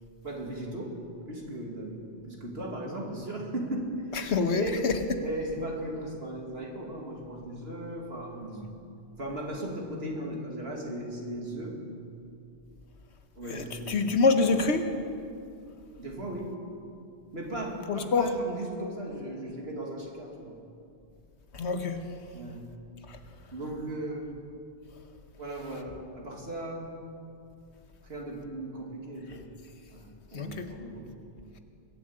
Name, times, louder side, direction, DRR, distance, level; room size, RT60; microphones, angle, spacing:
voice 1, 0.2-1.0 1.3-4.2 4.5-4.8 5.2-8.7 9.2-11.8 13.4-14.0 16.0-16.5 17.3-20.5 22.3-22.7 23.5-24.3 25.4-26.9 28.0-29.4 29.9-31.1, right 1 dB, 65° right, -1 dB, 2.7 m, -37 dB
voice 2, 4.2-4.9 13.5-14.8 17.9-18.3 21.6-22.0 30.3-30.6, left 4 dB, 85° left, 7 dB, 1.4 m, -25 dB
21.5 x 7.5 x 8.7 m, 2.5 s
omnidirectional pair, 1.1 m